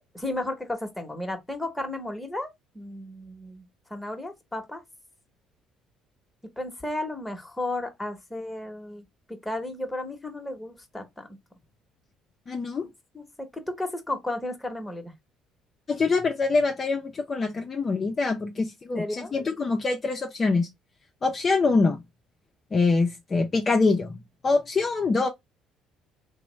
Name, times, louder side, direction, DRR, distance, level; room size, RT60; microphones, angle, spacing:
voice 1, 0.0-3.6 3.9-4.8 6.6-11.4 13.1-15.1 18.9-19.3, left 1 dB, 10° left, 1.0 m, -34 dB
voice 2, 12.5-12.9 15.9-20.7 21.2-22.0 22.7-25.3, left 3 dB, 35° left, 0.5 m, -24 dB
2.9 x 2.0 x 3.0 m
supercardioid pair, 80°, 0 cm